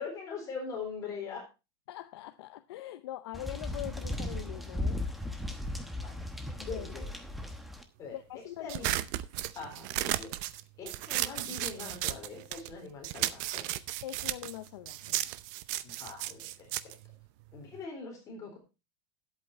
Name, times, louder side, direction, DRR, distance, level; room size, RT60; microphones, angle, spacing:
voice 1, 0.0-1.4 5.5-5.7 6.0-6.2 6.7-7.1 8.0-8.2 8.6-9.0 9.5-10.3 10.8-13.6 15.8-16.9 17.5-18.6, left 5 dB, 25° left, 3.7 m, -42 dB
voice 2, 1.9-5.0 6.6-7.0 8.1-9.0 14.0-15.3, left 14 dB, 75° left, 0.7 m, -43 dB
sound 1, 3.3-7.8, left 1 dB, ahead, 1.0 m, -36 dB
sound 2, 8.7-12.7 13.0-17.8, right 16 dB, 45° right, 0.7 m, -34 dB
11.0 x 8.4 x 4.3 m
supercardioid pair, 170°, 13 cm